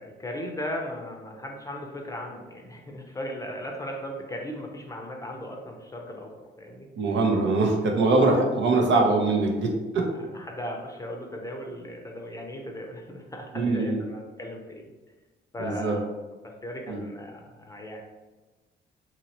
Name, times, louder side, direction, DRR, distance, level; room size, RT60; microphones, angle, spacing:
voice 1, 0.0-6.9 8.2-8.3 8.7-9.0 10.1-14.9 15.5-16.0 16.4-18.0, equal, 15° left, 1 dB, 0.6 m, -37 dB
voice 2, 7.0-10.0 13.5-14.0 15.6-16.0 16.9-17.0, right 3 dB, 70° right, 1 dB, 0.7 m, -23 dB
2.9 x 2.8 x 2.9 m, 1.2 s
cardioid pair, 90°, 20 cm